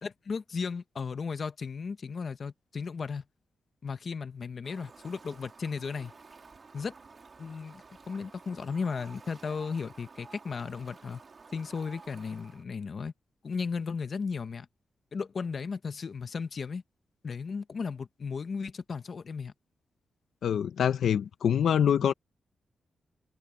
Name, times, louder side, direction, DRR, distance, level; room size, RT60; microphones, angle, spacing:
voice 1, 0.0-3.2 3.8-6.1 6.7-6.9 7.4-11.2 11.5-13.1 13.4-14.7 15.1-16.8 17.2-19.5, left 5 dB, 50° left, 1.1 m, -35 dB
Fowl, 4.6-12.6, right 4 dB, 40° right, 3.3 m, -52 dB
voice 2, 20.4-22.1, left 8 dB, 85° left, 0.9 m, -25 dB
wide cardioid pair, 125°, 0 cm